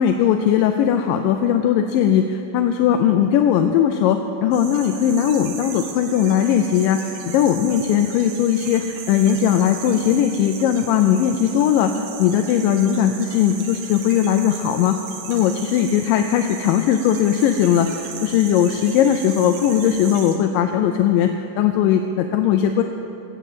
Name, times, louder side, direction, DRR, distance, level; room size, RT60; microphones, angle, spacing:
voice 1, 0.0-11.9 12.2-15.0 15.3-22.8, left 9 dB, 85° left, 7 dB, 2.0 m, -19 dB
sound 1, 4.5-20.4, right 6 dB, 85° right, 3.2 m, -36 dB
16.5 x 7.4 x 6.8 m, 2.8 s
omnidirectional pair, 4.4 m